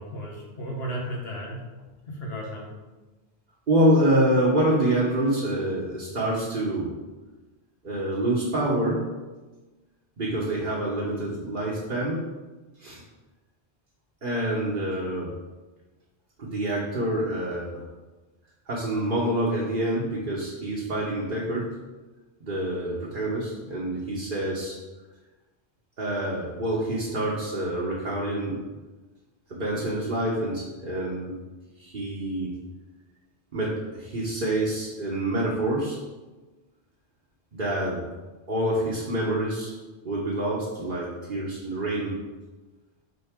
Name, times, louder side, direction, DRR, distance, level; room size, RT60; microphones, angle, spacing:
voice 1, 0.0-1.6 2.1-2.7, right 1 dB, 70° left, -2 dB, 1.8 m, -34 dB
voice 2, 3.7-7.0 7.8-9.1 10.2-12.3 12.8-13.0 14.2-15.3 16.4-17.8 18.7-21.7 22.4-24.8 26.0-28.6 29.5-31.3 31.8-32.5 33.5-36.0 37.5-38.1 38.5-39.7 40.0-42.2, right 1 dB, 50° right, -6 dB, 1.4 m, -26 dB
10.5 x 3.9 x 3.7 m, 1.2 s
omnidirectional pair, 1.1 m